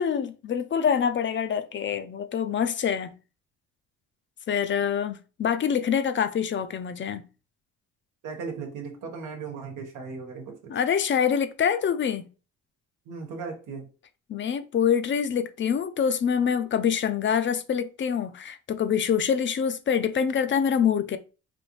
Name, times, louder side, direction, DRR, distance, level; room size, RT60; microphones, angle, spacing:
voice 1, 0.0-3.1 4.5-7.2 10.7-12.3 14.3-21.2, left 7 dB, 40° left, 0.4 m, -25 dB
voice 2, 8.2-10.7 13.1-13.9, right 5 dB, 85° right, 1.2 m, -37 dB
4.3 x 2.7 x 3.0 m
cardioid pair, 90°, 30 cm